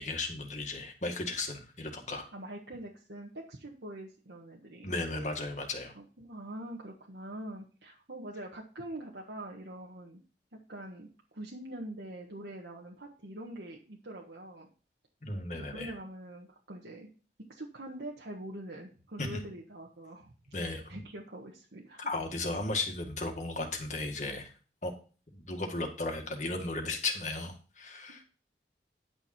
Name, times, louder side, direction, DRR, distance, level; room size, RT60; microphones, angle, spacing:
voice 1, 0.0-2.2 4.8-5.9 15.2-15.9 19.2-19.4 20.5-21.0 22.1-24.5 24.8-24.9 25.3-28.2, left 2 dB, 45° left, 3 dB, 1.9 m, -35 dB
voice 2, 2.3-4.9 5.9-10.2 10.5-14.7 15.5-17.1 17.5-20.3 20.6-22.0, right 1 dB, 80° right, -2 dB, 1.4 m, -44 dB
10.5 x 6.4 x 4.4 m, 0.37 s
head